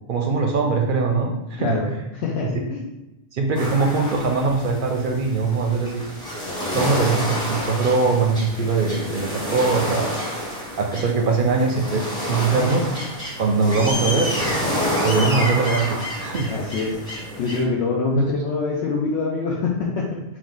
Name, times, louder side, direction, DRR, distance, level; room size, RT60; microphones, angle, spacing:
voice 1, 0.1-1.9 3.3-6.0 6.7-10.1 10.8-12.9 13.4-14.3 15.0-16.5 18.2-18.3, right 4 dB, 60° right, 2 dB, 0.6 m, -21 dB
voice 2, 1.6-1.9 2.1-2.8 6.4-6.8 16.5-17.0 17.4-20.2, left 4 dB, 80° left, -3 dB, 0.9 m, -25 dB
sound 1, 3.5-17.6, equal, 5° left, 0.9 m, -28 dB
3.9 x 2.5 x 3.8 m, 0.95 s
omnidirectional pair, 1.2 m